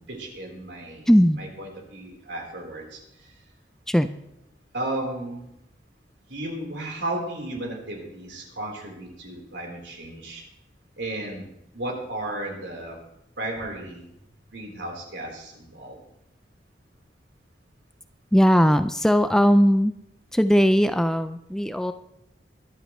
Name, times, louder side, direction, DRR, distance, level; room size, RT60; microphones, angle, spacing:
voice 1, 0.1-1.1 1.4-3.3 4.7-5.5 6.3-10.4 11.0-13.0 13.4-14.1 14.5-16.0, right 1 dB, 85° right, 0 dB, 3.9 m, -34 dB
voice 2, 1.1-1.4 3.9-4.1 18.3-19.9 20.3-21.9, equal, 5° left, 10 dB, 0.4 m, -19 dB
22.5 x 11.0 x 3.1 m, 0.83 s
head